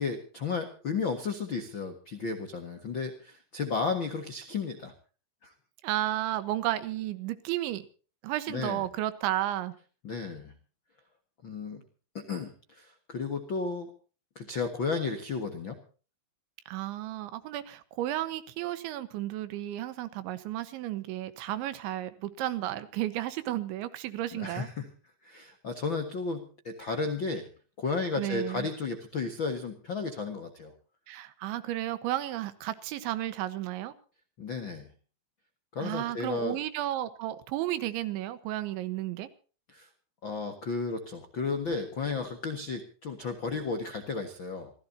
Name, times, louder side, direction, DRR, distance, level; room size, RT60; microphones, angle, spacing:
voice 1, 0.0-4.9 5.4-5.5 8.5-8.8 10.0-10.5 11.4-11.8 12.1-13.9 14.3-15.8 24.3-24.9 25.2-27.5 27.8-30.7 34.4-34.9 35.7-36.6 39.7-39.9 40.2-44.7, left 4 dB, 85° left, 6 dB, 1.0 m, -33 dB
voice 2, 5.8-7.8 8.2-9.7 16.7-24.7 28.2-28.7 31.1-33.9 35.8-39.3, right 14 dB, 90° right, 13 dB, 3.6 m, -33 dB
26.5 x 16.0 x 2.8 m, 0.39 s
omnidirectional pair, 5.2 m